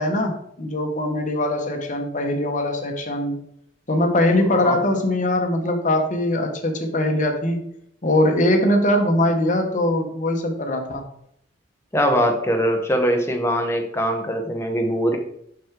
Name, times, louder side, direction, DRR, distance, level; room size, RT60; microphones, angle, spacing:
voice 1, 0.0-3.4 3.9-7.7 8.0-11.0, left 1 dB, 40° left, 4 dB, 1.1 m, -21 dB
voice 2, 11.9-15.2, equal, 15° left, 4 dB, 0.9 m, -22 dB
6.1 x 5.9 x 3.6 m, 0.72 s
head